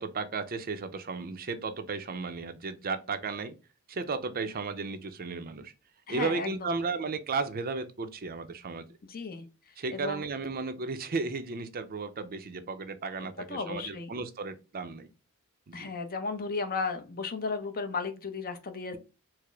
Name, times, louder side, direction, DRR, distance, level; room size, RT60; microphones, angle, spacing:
voice 1, 0.0-3.6 3.9-5.7 6.1-8.9 9.8-15.1 15.7-15.9, right 4 dB, 40° right, 0.5 m, -34 dB
voice 2, 6.1-6.8 9.1-10.2 13.5-14.2 15.7-19.0, left 4 dB, 40° left, 0.7 m, -35 dB
4.7 x 2.0 x 4.4 m
head